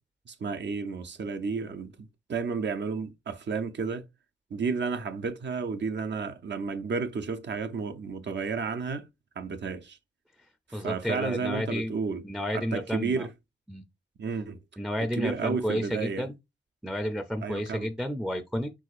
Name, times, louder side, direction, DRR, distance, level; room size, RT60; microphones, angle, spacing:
voice 1, 0.3-4.1 4.5-9.1 9.4-10.0 10.7-12.2 12.5-13.3 14.2-14.6 15.2-16.3 17.4-17.9, right 5 dB, 65° right, 0.6 m, -32 dB
voice 2, 10.7-11.9 12.2-13.3 13.7-13.8 14.8-16.3 16.8-18.7, equal, 5° right, 0.4 m, -31 dB
4.7 x 3.9 x 2.4 m
wide cardioid pair, 105°, 20 cm